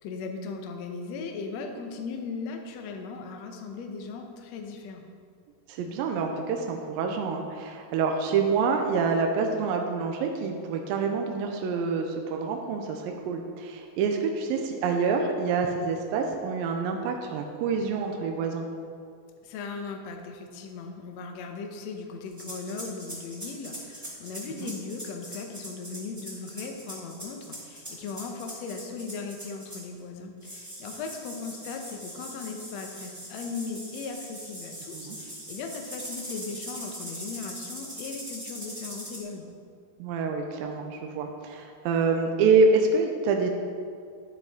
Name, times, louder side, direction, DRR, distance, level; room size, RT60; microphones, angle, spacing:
voice 1, 0.0-5.1 19.4-39.5, left 4 dB, 85° left, 3 dB, 1.5 m, -38 dB
voice 2, 5.7-18.7 24.6-24.7 34.9-35.2 40.0-43.5, right 4 dB, 80° right, 3 dB, 2.4 m, -27 dB
sound 1, 22.3-30.0 30.4-39.2, equal, 10° right, 0.9 m, -41 dB
10.5 x 9.1 x 3.6 m, 2.2 s
omnidirectional pair, 4.4 m